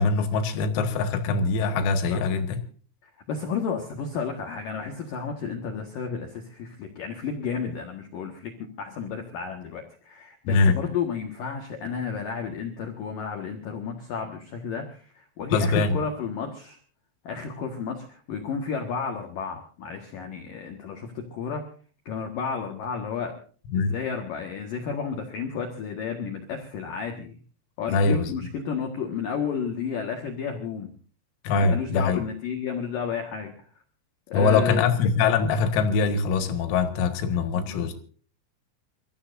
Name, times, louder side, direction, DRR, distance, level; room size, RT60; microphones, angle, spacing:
voice 1, 0.0-2.6 10.5-10.8 15.5-16.0 23.7-23.9 27.9-28.3 31.4-32.2 34.3-37.9, left 4 dB, 85° left, 4.4 m, -23 dB
voice 2, 2.1-2.4 3.3-8.5 8.8-16.8 17.2-21.6 22.1-23.3 23.7-27.3 27.8-30.9 31.6-33.5 34.3-34.9 37.5-37.8, left 6 dB, 60° left, 2.4 m, -32 dB
28.5 x 14.5 x 2.6 m
omnidirectional pair, 6.0 m